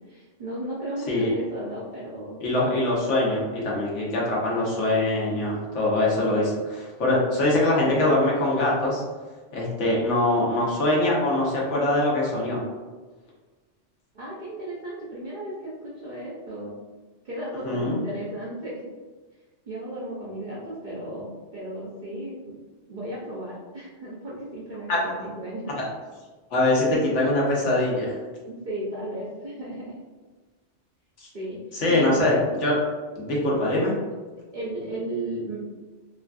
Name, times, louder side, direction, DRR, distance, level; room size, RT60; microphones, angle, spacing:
voice 1, 0.1-2.4 14.1-16.7 17.2-18.9 19.7-22.6 22.9-25.8 28.4-30.0 31.3-31.6 31.9-32.1 34.5-35.6, right 1 dB, 50° right, -8 dB, 0.6 m, -35 dB
voice 2, 2.4-9.0 9.5-12.6 17.6-18.0 24.9-25.0 25.7-25.9 26.5-28.2 31.2-31.3 31.7-32.7 33.2-33.9, left 1 dB, 90° left, -4 dB, 1.1 m, -23 dB
3.3 x 2.4 x 2.2 m, 1.3 s
omnidirectional pair, 1.2 m